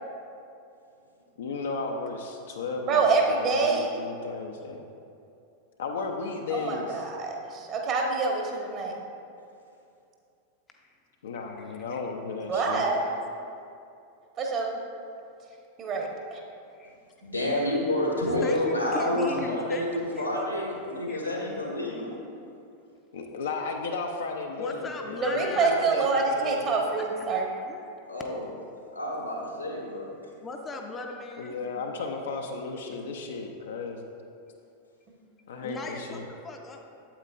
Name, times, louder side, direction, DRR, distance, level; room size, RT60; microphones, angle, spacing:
voice 1, 1.4-4.9 5.8-7.0 11.2-12.9 23.1-26.8 31.4-34.0 35.5-36.3, left 4 dB, 60° left, 2 dB, 0.5 m, -34 dB
voice 2, 2.9-4.0 6.5-8.9 12.4-13.1 14.4-14.7 15.8-16.4 25.2-27.5, right 4 dB, 35° right, 1 dB, 1.1 m, -26 dB
voice 3, 11.5-12.0 16.8-16.9 18.4-21.3 24.6-25.7 26.9-27.3 27.7-27.8 30.4-31.5 32.7-33.0 35.6-36.8, left 3 dB, 20° left, 2 dB, 0.6 m, -39 dB
voice 4, 17.2-22.1 28.1-28.4 28.9-30.1, left 1 dB, 90° left, -3 dB, 1.5 m, -28 dB
8.6 x 8.1 x 2.5 m, 2.6 s
figure-of-eight pair, 90°, 0 cm